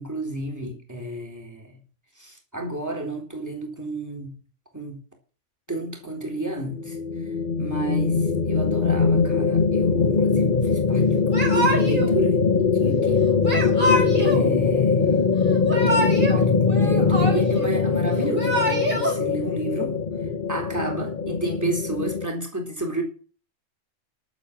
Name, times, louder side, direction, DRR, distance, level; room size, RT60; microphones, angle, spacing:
voice 1, 0.0-1.8 2.2-4.4 4.7-5.0 5.7-7.3 7.6-12.5 12.8-13.3 14.2-15.2 15.7-20.0 20.5-23.0, right 2 dB, 15° right, 4.0 m, -31 dB
sound 1, 6.4-22.3, left 5 dB, 40° left, 1.2 m, -22 dB
Yell / Crying sobbing, 11.3-12.1 13.4-14.4 15.5-16.4 16.7-17.7 18.2-19.1, right 1 dB, 40° right, 4.2 m, -25 dB
12.0 x 7.8 x 7.4 m
omnidirectional pair, 1.3 m